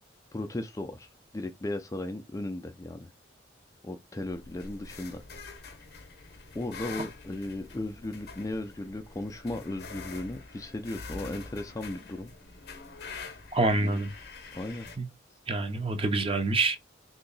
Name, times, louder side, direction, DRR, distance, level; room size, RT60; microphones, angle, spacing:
voice 1, 0.3-1.1 1.3-3.1 3.8-5.2 6.5-12.3 13.8-14.0 14.5-14.9, left 1 dB, 15° left, 0.3 m, -36 dB
sound 1, 4.2-15.0, left 4 dB, 55° left, 0.7 m, -45 dB
voice 2, 13.5-14.1 15.0-15.1 15.5-16.8, right 2 dB, 30° right, 0.6 m, -26 dB
3.0 x 2.7 x 3.9 m
head